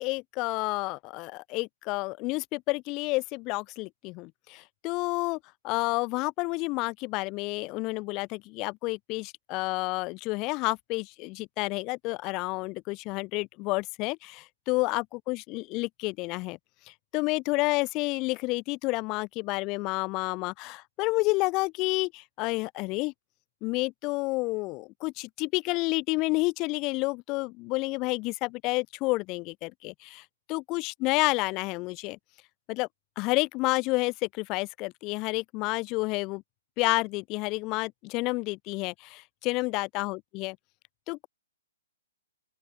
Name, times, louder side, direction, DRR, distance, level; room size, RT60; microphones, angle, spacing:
voice 1, 0.0-5.4 5.6-16.6 17.1-23.1 23.6-32.2 32.7-32.9 33.2-36.4 36.8-40.6 41.1-41.3, left 24 dB, 30° left, 0.7 m, -30 dB
open air
figure-of-eight pair, 120°, 0 cm